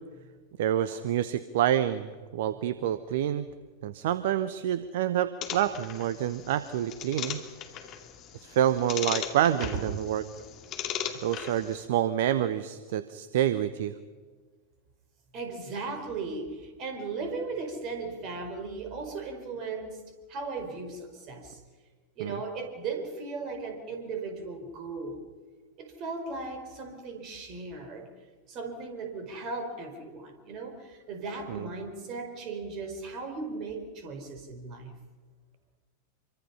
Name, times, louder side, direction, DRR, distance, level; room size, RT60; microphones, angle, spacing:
voice 1, 0.6-3.5 3.8-7.4 8.4-10.2 11.2-13.9 22.2-22.4 31.5-31.7, right 11 dB, 55° right, 14 dB, 0.9 m, -28 dB
sound 1, 5.4-11.9, left 9 dB, 35° left, 2.4 m, -38 dB
voice 2, 15.3-21.6 22.2-25.2 25.8-28.1 28.5-34.9, right 4 dB, 35° right, 6 dB, 4.7 m, -37 dB
26.5 x 24.0 x 5.7 m, 1.4 s
figure-of-eight pair, 90°, 0 cm